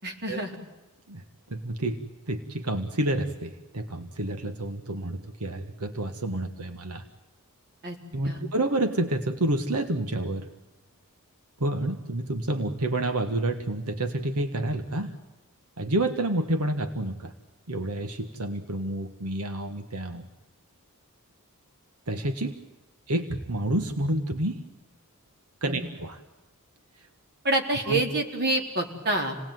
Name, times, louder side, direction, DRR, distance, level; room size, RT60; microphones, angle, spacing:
voice 1, 0.0-0.6 7.8-8.0 8.2-8.4 25.6-25.9 27.4-29.3, right 2 dB, 45° right, 3 dB, 4.1 m, -27 dB
voice 2, 1.5-2.0 2.3-7.0 8.1-10.5 11.6-15.1 15.8-17.3 17.7-20.2 22.1-22.6 23.1-24.6 25.6-26.2 27.0-27.1 27.9-28.0, right 1 dB, 85° right, 7 dB, 1.6 m, -29 dB
28.5 x 19.5 x 9.3 m, 1.1 s
head